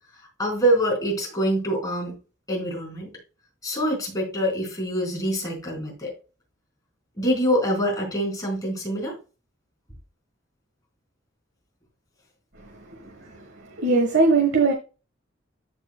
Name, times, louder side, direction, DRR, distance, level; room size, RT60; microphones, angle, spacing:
voice 1, 0.4-2.2 2.5-3.1 3.6-6.1 7.2-9.2 13.0-13.1, equal, 20° left, 4.3 m, -25 dB
voice 2, 13.8-14.7, right 3 dB, 65° right, 1.4 m, -19 dB
14.0 x 4.8 x 2.2 m
head